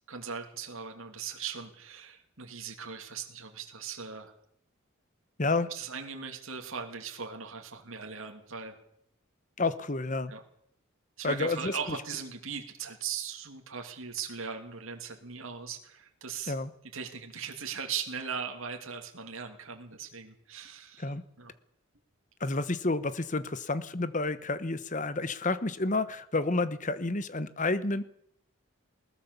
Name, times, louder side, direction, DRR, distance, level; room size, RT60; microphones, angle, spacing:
voice 1, 0.1-4.3 5.7-8.8 10.3-10.4 11.2-16.5 16.9-21.1 21.4-21.5, right 6 dB, 70° right, 3 dB, 2.7 m, -39 dB
voice 2, 5.4-5.7 9.6-10.3 11.2-12.0 16.5-16.7 21.0-21.2 22.4-28.0, left 3 dB, 35° left, 13 dB, 1.1 m, -30 dB
21.0 x 19.0 x 7.0 m, 0.72 s
head